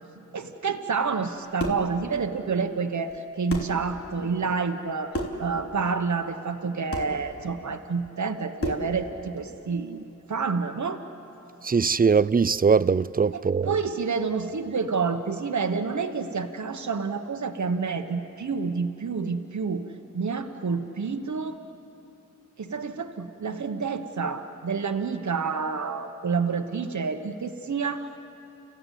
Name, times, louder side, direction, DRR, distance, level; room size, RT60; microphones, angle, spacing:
voice 1, 0.3-11.0 13.3-19.9 20.1-21.6 22.6-28.1, right 5 dB, 70° right, 1.3 m, -29 dB
sound 1, 1.6-1.9 3.1-3.2 3.5-3.8 5.1-5.5 6.9-7.2 8.6-8.9, equal, 45° left, 3.4 m, -31 dB
voice 2, 11.6-13.7, right 5 dB, 30° right, 0.5 m, -21 dB
30.0 x 15.0 x 8.3 m
cardioid pair, 40°, 30 cm